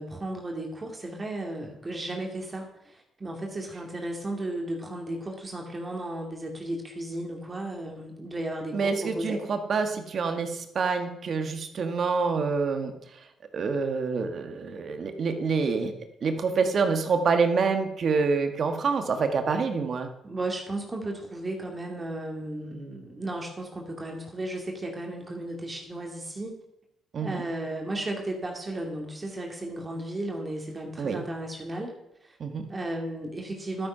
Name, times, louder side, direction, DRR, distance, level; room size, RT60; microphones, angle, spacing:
voice 1, 0.0-9.4 20.2-26.5 27.2-31.9 32.2-32.4 32.7-33.9, right 1 dB, 25° right, 1 dB, 2.4 m, -34 dB
voice 2, 8.7-12.9 13.5-16.0 16.2-20.1 27.1-27.4 31.0-31.3 32.4-32.7, right 5 dB, 50° right, 6 dB, 1.6 m, -27 dB
12.0 x 9.1 x 5.7 m, 0.80 s
cardioid pair, 90°, 0 cm